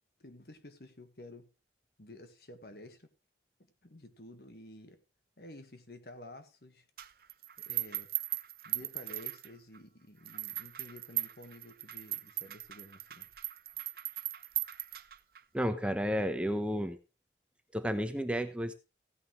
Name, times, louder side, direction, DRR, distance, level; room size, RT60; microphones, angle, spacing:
voice 1, 0.2-1.5 2.0-3.1 3.8-5.0 5.4-6.9 7.6-8.1 8.6-13.3, left 1 dB, 60° left, 1.5 m, -51 dB
sound 1, 7.0-9.8 10.3-15.4, right 15 dB, 55° right, 0.6 m, -38 dB
voice 2, 15.5-17.0 17.7-18.7, equal, 5° right, 0.8 m, -32 dB
15.5 x 9.4 x 3.1 m
head